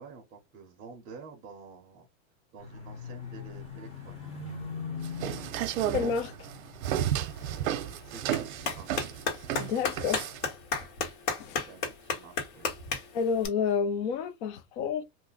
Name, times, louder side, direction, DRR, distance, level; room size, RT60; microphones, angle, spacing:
voice 1, 0.0-2.1 2.5-4.6 8.0-9.2 11.7-12.7, right 4 dB, 20° right, 0.7 m, -49 dB
sound 1, 2.6-9.7 10.0-10.5, left 5 dB, 15° left, 0.9 m, -42 dB
sound 2, 5.0-10.5, right 11 dB, 85° right, 0.6 m, -32 dB
voice 2, 5.9-6.3 9.6-10.3 11.4-11.6 13.1-15.0, left 6 dB, 40° left, 0.5 m, -29 dB
Clapping, 6.8-13.5, left 5 dB, 60° left, 1.5 m, -35 dB
2.6 x 2.1 x 3.8 m
supercardioid pair, 155°, 40 cm